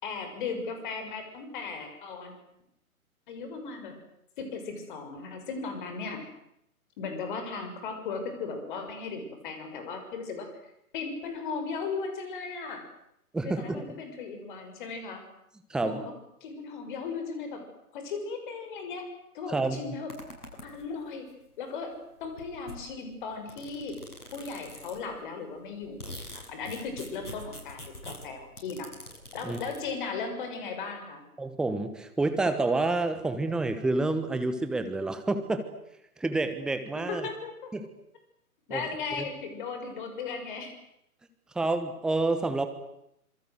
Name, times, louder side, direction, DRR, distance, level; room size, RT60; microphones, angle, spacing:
voice 1, 0.0-2.3 3.3-4.0 4.4-6.3 7.0-10.5 10.9-12.8 13.4-15.2 15.8-16.1 16.4-17.6 17.9-19.1 19.3-20.1 20.6-21.3 21.6-21.9 22.2-24.0 24.3-28.9 29.3-31.2 37.1-37.7 38.7-40.7, left 4 dB, 35° left, 6 dB, 6.4 m, -37 dB
voice 2, 13.3-13.8 15.7-16.0 19.5-19.9 29.4-29.6 31.4-35.6 36.2-37.3 37.7-37.9 38.7-38.8 41.5-42.7, right 2 dB, ahead, 9 dB, 1.1 m, -28 dB
sound 1, 20.1-21.1 21.9-22.0 22.2-25.2 25.6-29.8, left 1 dB, 85° left, 7.7 m, -45 dB
26.5 x 23.5 x 8.1 m, 0.79 s
figure-of-eight pair, 135°, 44 cm